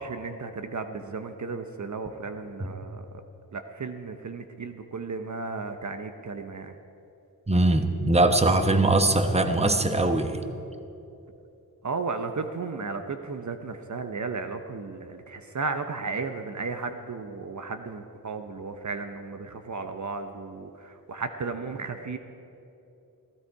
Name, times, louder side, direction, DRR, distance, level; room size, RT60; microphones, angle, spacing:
voice 1, 0.0-3.0 3.5-6.7 11.8-22.2, right 4 dB, 50° right, 7 dB, 0.8 m, -34 dB
voice 2, 7.5-10.4, right 2 dB, 15° right, 7 dB, 1.0 m, -21 dB
15.5 x 14.5 x 4.7 m, 2.8 s
cardioid pair, 65°, 37 cm